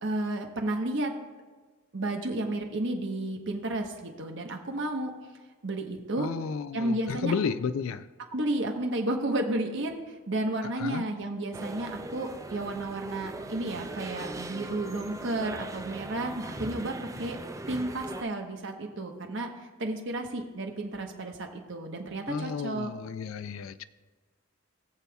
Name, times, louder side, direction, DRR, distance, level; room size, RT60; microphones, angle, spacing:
voice 1, 0.0-1.1 1.9-5.1 5.6-6.3 6.7-7.3 8.3-17.4 17.7-19.5 19.8-22.9, right 1 dB, 65° right, 3 dB, 1.1 m, -32 dB
voice 2, 6.2-8.1 10.6-11.1 22.3-23.9, left 6 dB, 75° left, 13 dB, 0.4 m, -32 dB
sound 1, 11.5-18.2, right 2 dB, 15° right, 0.4 m, -40 dB
20.5 x 6.9 x 2.3 m, 1.4 s
head